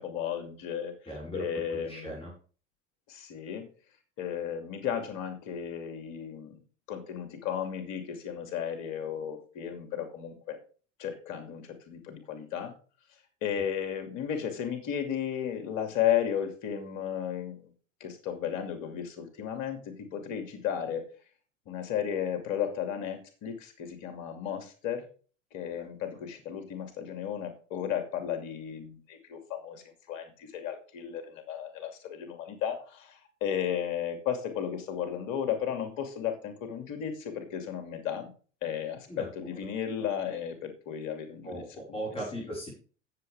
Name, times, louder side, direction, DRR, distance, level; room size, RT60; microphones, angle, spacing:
voice 1, 0.0-1.0 1.3-2.1 3.1-3.7 4.2-6.6 6.9-10.6 11.0-12.7 13.4-17.7 18.0-21.0 21.7-25.0 25.5-38.3 38.6-41.6 41.9-42.0, left 9 dB, 50° left, 7 dB, 2.7 m, -34 dB
voice 2, 1.1-1.4 1.7-2.3 39.1-39.3 40.0-40.2 41.4-42.7, right 1 dB, 15° left, -4 dB, 5.6 m, -38 dB
14.0 x 7.5 x 3.7 m, 0.39 s
figure-of-eight pair, 75°, 38 cm